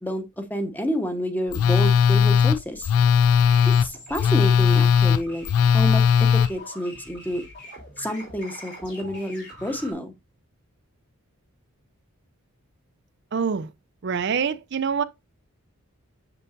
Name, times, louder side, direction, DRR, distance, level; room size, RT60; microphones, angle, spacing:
voice 1, 0.0-2.9 3.7-5.5 5.7-7.4 8.0-10.1, equal, 10° left, 0.9 m, -29 dB
Telephone, 1.5-6.5, left 7 dB, 85° left, 0.3 m, -18 dB
sound 1, 3.3-9.9, equal, 50° left, 3.6 m, -43 dB
voice 2, 13.3-13.7 14.0-15.0, right 6 dB, 50° right, 0.4 m, -25 dB
6.9 x 6.8 x 2.5 m
head